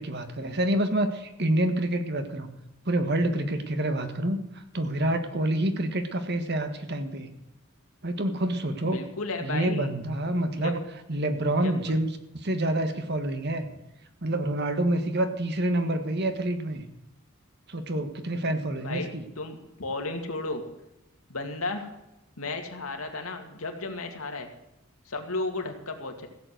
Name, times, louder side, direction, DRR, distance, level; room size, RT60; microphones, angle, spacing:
voice 1, 0.0-2.5 2.8-7.3 8.0-9.0 9.4-10.8 11.1-12.1 12.3-13.8 14.2-16.8 17.7-19.2, right 1 dB, 55° right, 8 dB, 1.6 m, -27 dB
voice 2, 8.8-9.9 10.6-10.7 11.6-11.7 18.8-19.1 19.4-20.6 21.3-21.9 22.4-24.5 25.1-26.3, left 3 dB, 90° left, 4 dB, 2.3 m, -33 dB
16.0 x 7.9 x 7.9 m, 0.91 s
head